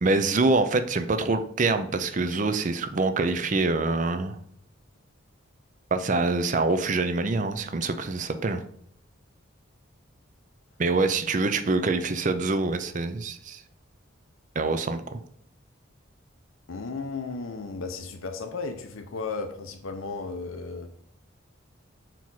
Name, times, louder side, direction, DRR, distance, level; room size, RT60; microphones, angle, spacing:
voice 1, 0.0-4.4 5.9-8.6 10.8-13.6 14.6-15.2, right 3 dB, 40° right, 9 dB, 0.5 m, -25 dB
voice 2, 16.7-20.9, left 4 dB, 85° left, 6 dB, 0.7 m, -34 dB
6.0 x 4.5 x 4.0 m, 0.67 s
head